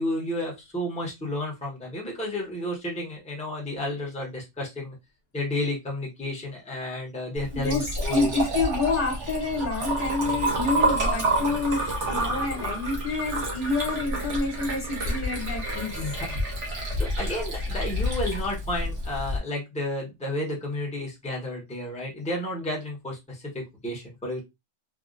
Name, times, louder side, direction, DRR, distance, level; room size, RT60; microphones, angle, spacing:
voice 1, 0.0-4.9 5.3-8.3 16.0-16.4 17.0-24.4, left 1 dB, 5° left, -2 dB, 0.9 m, -32 dB
Liquid, 7.4-19.4, right 1 dB, 75° right, 1.4 m, -29 dB
voice 2, 7.5-15.9, left 3 dB, 50° left, 0 dB, 1.1 m, -28 dB
3.5 x 2.4 x 2.4 m, 0.21 s
omnidirectional pair, 1.2 m